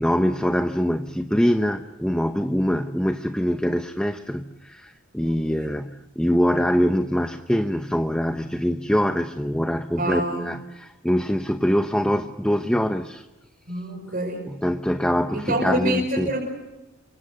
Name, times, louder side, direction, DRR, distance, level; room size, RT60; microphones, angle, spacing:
voice 1, 0.0-13.3 14.5-16.3, equal, 5° left, 7 dB, 0.8 m, -24 dB
voice 2, 5.2-5.7 10.0-10.5 13.7-14.4 15.3-16.4, right 1 dB, 45° right, -1 dB, 5.6 m, -27 dB
28.5 x 24.5 x 6.8 m, 1.1 s
head